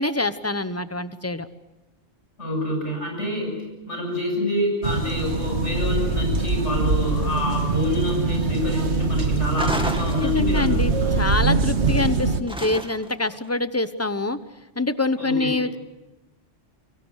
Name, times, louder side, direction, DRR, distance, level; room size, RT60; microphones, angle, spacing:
voice 1, 0.0-1.5 10.2-14.4 14.8-15.8, left 2 dB, 15° left, 12 dB, 1.0 m, -25 dB
voice 2, 2.4-3.6 3.9-11.1 15.2-15.6, left 1 dB, 85° left, 1 dB, 7.8 m, -27 dB
sound 1, 4.8-12.4, right 3 dB, 70° right, 1.9 m, -23 dB
sound 2, 9.5-10.8 12.5-13.2, equal, 5° right, 2.2 m, -31 dB
30.0 x 24.0 x 6.5 m, 1.0 s
omnidirectional pair, 1.2 m